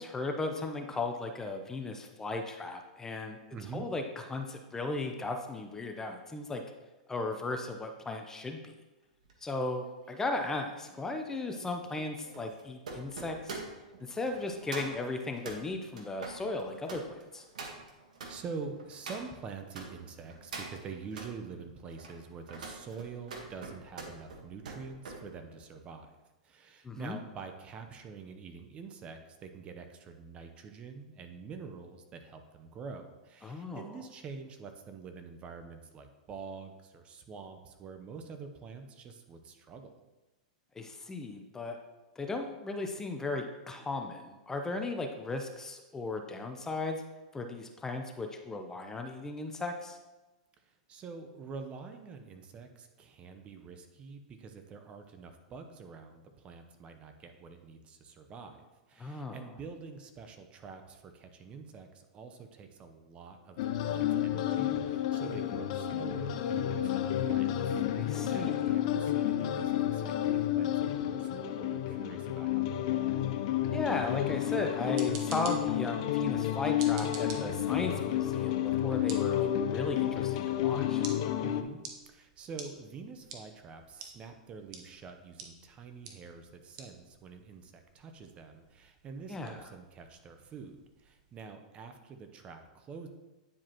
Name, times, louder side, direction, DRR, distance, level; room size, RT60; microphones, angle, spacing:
voice 1, 0.0-3.4 3.7-4.0 4.3-6.6 7.1-8.7 9.4-13.6 14.0-17.5 26.8-27.2 33.4-34.0 40.8-41.8 42.2-47.0 47.3-50.0 59.0-59.4 68.0-68.7 73.7-81.0 89.3-89.6, left 3 dB, 15° left, 4 dB, 0.6 m, -36 dB
voice 2, 3.5-3.9 18.3-26.1 26.4-39.9 50.7-73.0 81.4-93.1, right 5 dB, 30° right, 7 dB, 0.8 m, -46 dB
sound 1, 9.2-19.9 20.3-21.3 21.8-25.2 25.6-25.9, right 3 dB, 80° right, 1.4 m, -45 dB
sound 2, 63.6-81.6, left 11 dB, 55° left, 0.5 m, -31 dB
sound 3, 74.7-91.5, right 5 dB, 55° right, 1.1 m, -51 dB
9.6 x 4.8 x 2.9 m, 1.1 s
hypercardioid pair, 120°, 4 cm